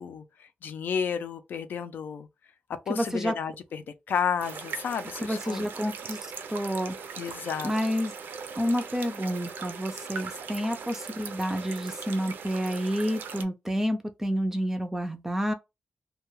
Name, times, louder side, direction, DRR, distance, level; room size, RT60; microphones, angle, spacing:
voice 1, 0.0-2.3 2.9-5.7 7.2-7.9, left 7 dB, 80° left, 0.4 m, -32 dB
voice 2, 2.9-3.3 5.2-6.2 6.5-7.0 7.6-8.1 8.6-15.5, equal, 15° right, 0.4 m, -29 dB
sound 1, 4.4-13.4, right 6 dB, 85° right, 0.5 m, -40 dB
2.2 x 2.2 x 3.0 m
wide cardioid pair, 120°, 3 cm